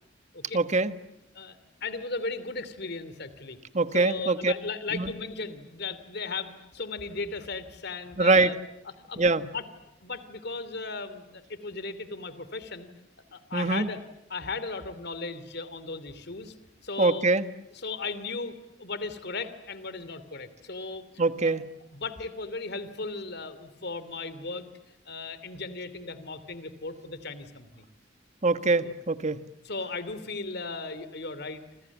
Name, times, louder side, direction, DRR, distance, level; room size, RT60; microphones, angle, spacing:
voice 1, 0.5-0.9 3.7-4.5 4.9-5.1 8.2-8.5 9.2-9.4 13.5-13.9 17.0-17.4 21.2-21.6 28.4-29.4, right 3 dB, 35° right, 11 dB, 1.4 m, -23 dB
voice 2, 1.3-3.6 3.9-8.6 9.1-9.6 10.0-12.9 13.3-14.0 14.3-16.5 16.8-17.3 17.8-21.0 21.4-21.5 21.9-24.7 25.0-27.9 28.8-28.9 29.6-31.6, left 3 dB, 55° left, 14 dB, 2.7 m, -36 dB
29.5 x 26.5 x 7.2 m, 0.91 s
head